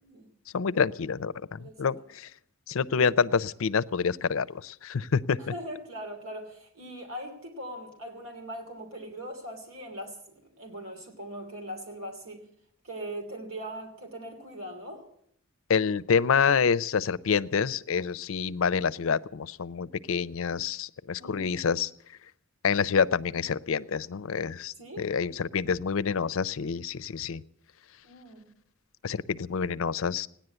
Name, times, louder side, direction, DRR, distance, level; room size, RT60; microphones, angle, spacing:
voice 1, 0.5-2.3 2.7-5.4 15.7-21.9 22.6-27.4 29.0-30.3, left 6 dB, 70° left, 16 dB, 0.5 m, -27 dB
voice 2, 1.6-1.9 5.4-12.4 12.8-15.0 21.2-21.5 24.8-25.1 28.0-28.5, right 1 dB, 70° right, 2 dB, 3.0 m, -40 dB
16.5 x 10.5 x 7.9 m, 0.69 s
head